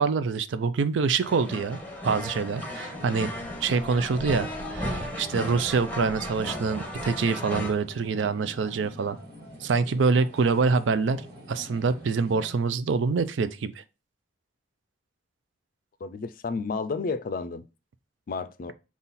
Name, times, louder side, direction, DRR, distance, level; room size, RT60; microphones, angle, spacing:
voice 1, 0.0-1.8 2.0-3.3 3.6-4.5 4.7-9.2 9.6-11.2 11.5-13.8, right 4 dB, 80° right, 0.4 m, -25 dB
sound 1, 1.2-7.7, left 1 dB, 10° left, 0.8 m, -35 dB
sound 2, 2.3-12.6, equal, 55° right, 1.6 m, -45 dB
voice 2, 16.0-17.6 18.3-18.7, left 4 dB, 50° left, 0.4 m, -31 dB
5.5 x 2.4 x 4.0 m
head